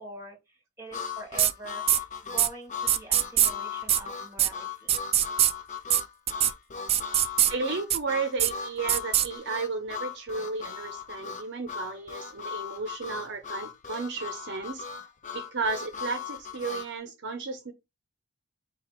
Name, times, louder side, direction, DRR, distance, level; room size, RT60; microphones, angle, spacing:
voice 1, 0.0-1.8 2.2-5.0, right 1 dB, 15° right, 1.6 m, -44 dB
Harmonica, 0.9-16.9, left 6 dB, 35° left, 0.7 m, -38 dB
sound 1, 1.4-1.5 1.9-2.0 2.4-2.5 2.9-3.5 3.9-4.0 4.4-4.5 4.9-5.5 5.9-6.0 6.3-6.5 6.9-7.5 7.9-8.0 8.4-8.5 8.9-9.3, right 11 dB, 30° right, 0.3 m, -22 dB
voice 2, 7.5-14.8 15.3-17.7, right 4 dB, 55° right, 0.6 m, -33 dB
4.9 x 2.3 x 4.3 m
head